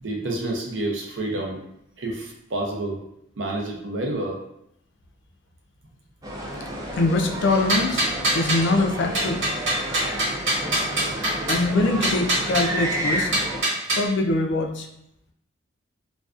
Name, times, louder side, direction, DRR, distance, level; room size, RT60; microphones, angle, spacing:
voice 1, 0.0-1.6 2.0-3.0 3.4-4.4, right 2 dB, 65° right, 0 dB, 0.6 m, -29 dB
sound 1, 6.2-13.6, right 1 dB, 20° right, 0.3 m, -31 dB
voice 2, 6.9-8.1 8.3-9.4 11.5-13.3 14.0-14.9, left 2 dB, 65° left, 3 dB, 0.4 m, -23 dB
sound 2, 7.5-8.7 9.1-11.7 12.0-12.6 13.3-14.0, right 1 dB, 90° right, 1.3 m, -24 dB
2.4 x 2.2 x 2.4 m, 0.77 s
head